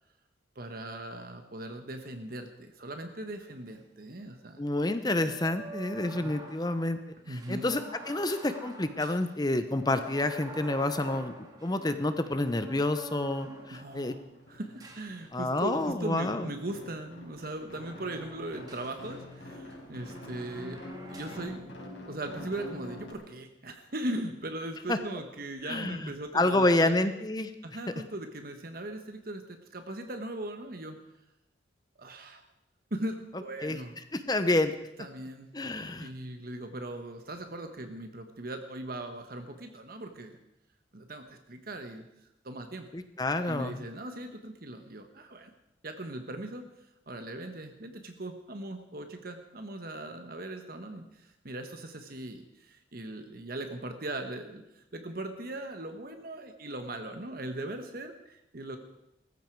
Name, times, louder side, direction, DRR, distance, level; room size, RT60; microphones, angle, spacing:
voice 1, 0.5-4.6 6.1-6.3 7.3-7.7 13.7-20.8 21.1-21.7 22.0-27.0 27.6-31.0 32.0-32.4 32.9-33.9 35.0-35.5 36.0-40.4 40.9-42.0 42.4-42.9 43.5-45.5 45.8-58.8, right 1 dB, 50° right, 6 dB, 1.2 m, -39 dB
sound 1, 3.3-3.4 5.2-14.2 14.8-15.7 16.2-19.4 19.7-21.5, right 2 dB, 20° right, 2.0 m, -47 dB
voice 2, 4.6-7.0 7.3-11.3 11.6-14.1 15.3-16.4 24.9-25.0 25.7-27.5 33.6-33.8 34.1-34.7 35.5-36.1 42.9-43.8, left 2 dB, 20° left, 10 dB, 0.8 m, -28 dB
sound 2, 13.0-13.6 13.8-23.1, left 1 dB, 80° left, 4.3 m, -47 dB
18.5 x 15.0 x 4.7 m, 0.86 s
head